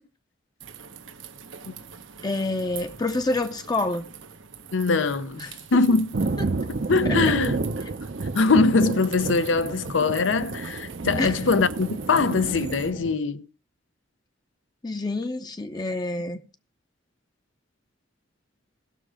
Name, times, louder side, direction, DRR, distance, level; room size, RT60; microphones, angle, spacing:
sound 1, 0.6-12.9, right 6 dB, 90° right, 1.0 m, -43 dB
voice 1, 2.2-4.1 5.4-5.5 6.4-6.5 7.0-7.4 11.2-11.4 14.8-16.4, left 2 dB, 20° left, 0.6 m, -28 dB
voice 2, 4.7-5.4 5.7-6.2 6.9-7.6 8.3-13.5, left 3 dB, 80° left, 0.7 m, -22 dB
Thunder, 6.1-13.1, right 3 dB, 55° right, 0.6 m, -30 dB
16.5 x 6.2 x 4.9 m
head